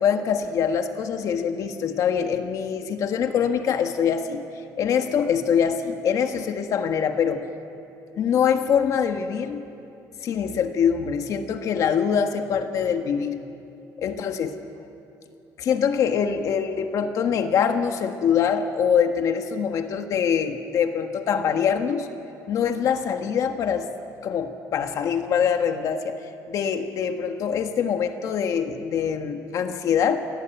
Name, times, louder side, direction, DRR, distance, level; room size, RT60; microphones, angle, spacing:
voice 1, 0.0-4.4 4.8-7.5 8.2-9.7 10.2-13.4 14.0-14.5 15.6-22.1 22.5-23.9 24.2-30.2, left 7 dB, 55° left, 6 dB, 1.5 m, -24 dB
29.0 x 20.5 x 9.1 m, 2.7 s
cardioid pair, 180°, 7 cm